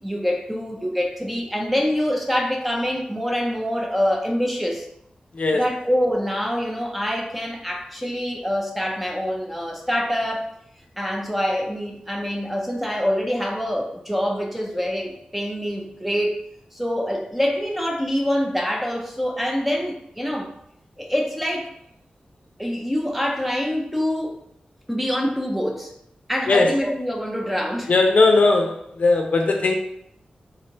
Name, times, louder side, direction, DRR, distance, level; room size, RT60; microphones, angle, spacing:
voice 1, 0.0-4.9 5.5-10.5 11.0-16.4 16.7-20.5 21.0-21.7 22.6-24.4 24.9-25.9 26.3-27.9, equal, 5° right, 0 dB, 0.6 m, -25 dB
voice 2, 27.9-29.7, left 3 dB, 60° left, 2 dB, 0.6 m, -18 dB
3.7 x 3.2 x 2.9 m, 0.76 s
wide cardioid pair, 90°, 3 cm